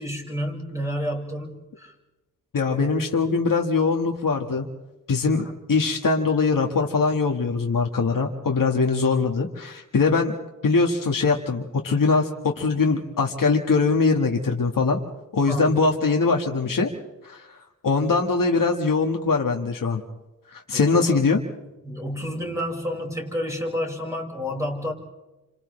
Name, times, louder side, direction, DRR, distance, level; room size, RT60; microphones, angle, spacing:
voice 1, 0.0-1.9 5.3-5.4 15.5-15.9 16.4-16.8 20.7-21.2 21.8-24.9, equal, 10° right, -1 dB, 5.1 m, -30 dB
voice 2, 2.5-4.7 5.1-10.3 10.6-15.0 15.3-16.9 17.2-17.5 17.8-20.0 20.5-21.4, left 4 dB, 85° left, 2 dB, 1.6 m, -22 dB
30.0 x 27.0 x 3.2 m, 1.0 s
wide cardioid pair, 70°, 32 cm